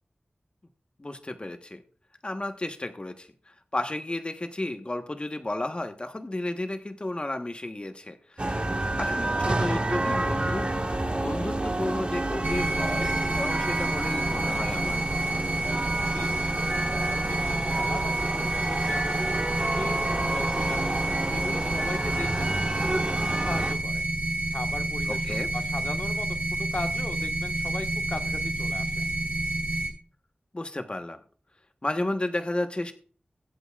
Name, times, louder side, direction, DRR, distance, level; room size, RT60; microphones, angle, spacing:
voice 1, 1.0-1.8 2.2-3.3 3.7-8.6 9.0-15.0 25.1-25.5 30.5-31.2 31.8-32.9, left 1 dB, 30° left, 7 dB, 1.2 m, -33 dB
sound 1, 8.4-23.7, right 2 dB, 35° right, 1.5 m, -29 dB
sound 2, 12.4-29.9, right 2 dB, 70° right, 5.2 m, -29 dB
voice 2, 17.0-17.4 17.7-19.2 19.8-21.0 21.3-24.0 24.5-29.0, left 2 dB, 60° left, 6 dB, 1.4 m, -38 dB
23.0 x 7.9 x 2.4 m, 0.41 s
wide cardioid pair, 75°, 3 cm